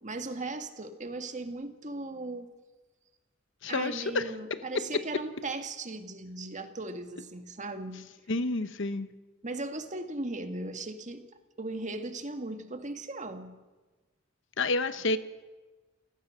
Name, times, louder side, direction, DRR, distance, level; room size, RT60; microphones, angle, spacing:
voice 1, 0.0-2.5 3.7-8.1 9.4-11.3 11.6-13.6, right 2 dB, 35° right, 7 dB, 1.9 m, -37 dB
voice 2, 3.6-4.6 8.3-9.1 14.6-15.2, left 3 dB, 60° left, 12 dB, 1.0 m, -29 dB
29.0 x 17.0 x 6.5 m, 1.2 s
head